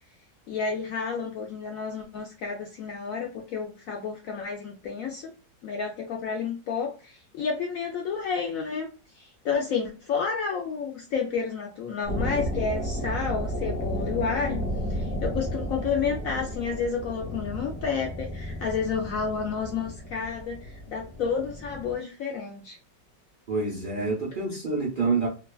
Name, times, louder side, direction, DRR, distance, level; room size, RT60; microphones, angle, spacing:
voice 1, 0.5-5.3 5.6-8.9 9.1-14.6 14.9-22.8, left 5 dB, 70° left, 0.8 m, -30 dB
sound 1, 12.0-21.9, equal, 30° left, 0.8 m, -33 dB
voice 2, 23.5-25.3, right 4 dB, 60° right, 0.5 m, -27 dB
2.9 x 2.2 x 2.3 m
omnidirectional pair, 1.9 m